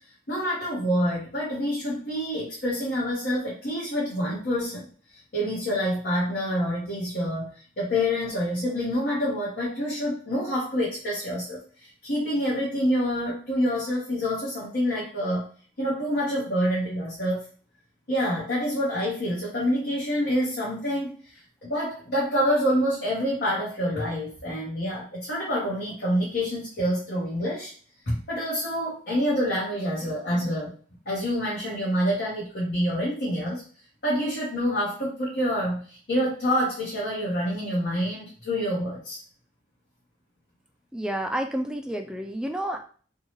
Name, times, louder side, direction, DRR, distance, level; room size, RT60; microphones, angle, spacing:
voice 1, 0.3-4.8 5.3-7.5 7.8-15.5 15.8-17.4 18.1-21.1 21.6-27.7 28.1-30.8 31.1-33.6 34.0-39.2, equal, 65° left, -7 dB, 1.0 m, -27 dB
voice 2, 40.9-42.8, right 1 dB, 5° right, 4 dB, 0.3 m, -30 dB
2.7 x 2.3 x 3.0 m, 0.42 s
head